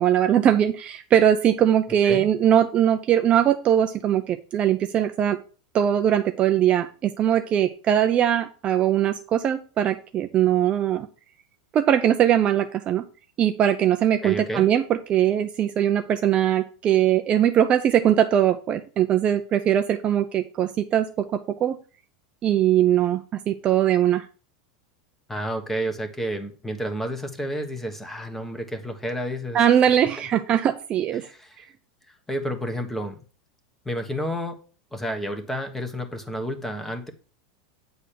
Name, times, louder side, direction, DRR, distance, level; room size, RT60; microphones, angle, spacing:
voice 1, 0.0-5.4 5.7-11.1 11.7-13.0 13.4-21.8 22.4-24.3 29.5-31.3, right 10 dB, 30° right, 8 dB, 0.6 m, -21 dB
voice 2, 14.2-14.7 25.3-29.6 30.0-30.1 31.1-31.6 32.1-33.2 33.8-34.6 34.9-37.1, equal, 5° left, 7 dB, 1.4 m, -30 dB
8.9 x 4.0 x 6.7 m, 0.38 s
supercardioid pair, 140°, 4 cm